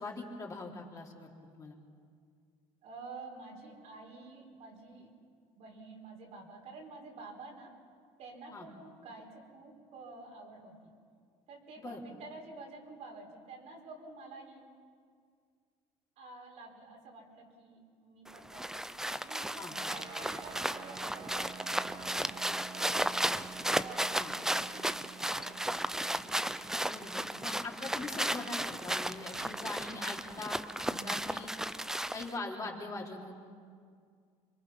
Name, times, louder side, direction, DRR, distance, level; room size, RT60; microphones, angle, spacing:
voice 1, 0.0-1.8 8.5-8.7 11.8-12.0 19.6-19.7 24.1-24.3 26.8-31.5 32.1-33.3, left 3 dB, 30° left, -2 dB, 3.8 m, -42 dB
voice 2, 2.8-5.1 5.6-7.8 8.2-10.9 11.5-14.7 16.2-18.8 19.1-23.3 23.8-25.9, right 3 dB, 65° right, 0 dB, 4.7 m, -50 dB
sound 1, 18.3-32.4, right 1 dB, 5° right, 0.5 m, -35 dB
sound 2, 19.9-30.8, right 7 dB, 35° right, 1.9 m, -52 dB
27.5 x 23.5 x 5.9 m, 2.1 s
cardioid pair, 115°, 12 cm